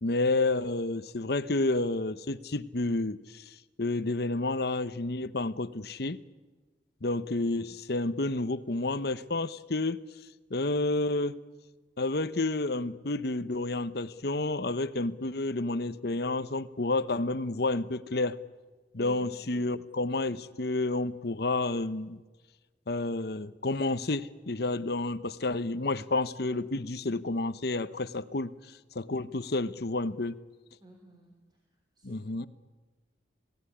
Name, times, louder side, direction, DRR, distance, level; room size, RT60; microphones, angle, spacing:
voice 1, 0.0-6.2 7.0-10.0 10.5-11.4 12.0-18.4 18.9-22.2 22.9-28.5 28.9-30.4 32.0-32.5, left 2 dB, 55° left, 13 dB, 0.9 m, -30 dB
voice 2, 19.0-19.8 30.8-31.6 32.0-32.5, right 1 dB, 25° right, 1 dB, 3.7 m, -52 dB
27.5 x 18.5 x 10.0 m, 1.3 s
head